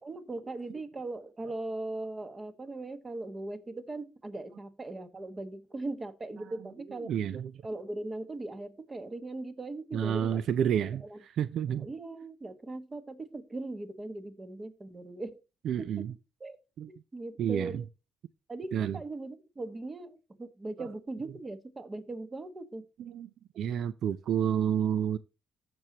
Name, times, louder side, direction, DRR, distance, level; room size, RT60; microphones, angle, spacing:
voice 1, 0.0-7.1 7.6-10.4 11.1-11.2 11.7-15.4 15.8-16.1 16.4-16.6 16.9-17.8 18.5-22.9, right 2 dB, 25° right, 1.5 m, -39 dB
voice 2, 6.9-7.5 9.9-11.9 15.6-16.1 16.8-16.9 17.4-17.8 18.7-19.0 20.8-20.9 23.0-25.2, right 9 dB, 65° right, 0.5 m, -30 dB
14.0 x 6.1 x 2.9 m
cardioid pair, 105°, 0 cm